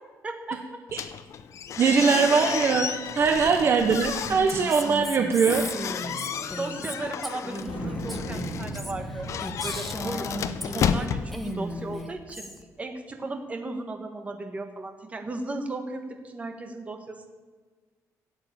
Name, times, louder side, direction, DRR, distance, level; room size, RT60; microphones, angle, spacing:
voice 1, 0.2-0.8 3.2-3.6 6.3-9.3 9.6-12.5 12.8-17.3, right 2 dB, 20° right, 5 dB, 1.5 m, -36 dB
sound 1, 0.9-12.0, left 7 dB, 55° left, 0.7 m, -33 dB
voice 2, 1.8-2.9 3.1-5.6, right 5 dB, 40° right, 4 dB, 0.9 m, -21 dB
Female speech woman speaking, 4.2-11.1 11.3-12.6, equal, ahead, 1.1 m, -36 dB
sound 2, 7.7-12.4, equal, 70° left, 4.1 m, -38 dB
15.5 x 7.9 x 8.9 m, 1.4 s
cardioid pair, 160°, 6 cm